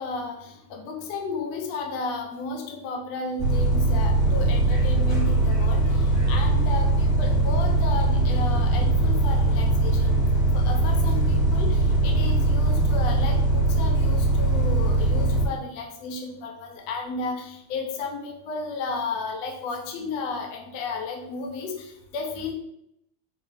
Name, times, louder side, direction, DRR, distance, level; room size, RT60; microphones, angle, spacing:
voice 1, 0.0-10.2 10.5-22.5, left 4 dB, 55° left, 3 dB, 1.0 m, -33 dB
Bus, 3.4-15.5, right 2 dB, ahead, 1.6 m, -21 dB
sound 1, 4.2-12.9, equal, 35° right, 1.1 m, -36 dB
4.7 x 3.1 x 3.6 m, 0.77 s
supercardioid pair, 160°, 46 cm